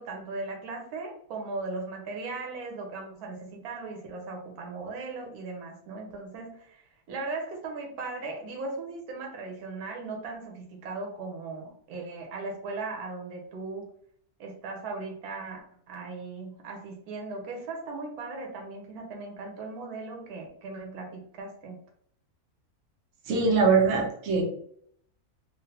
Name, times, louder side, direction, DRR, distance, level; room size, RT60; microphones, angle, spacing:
voice 1, 0.0-13.9 14.4-21.8, right 3 dB, 90° right, 1 dB, 1.2 m, -38 dB
voice 2, 23.3-24.4, right 4 dB, 60° right, -1 dB, 1.1 m, -22 dB
3.2 x 2.4 x 2.7 m, 0.66 s
omnidirectional pair, 1.6 m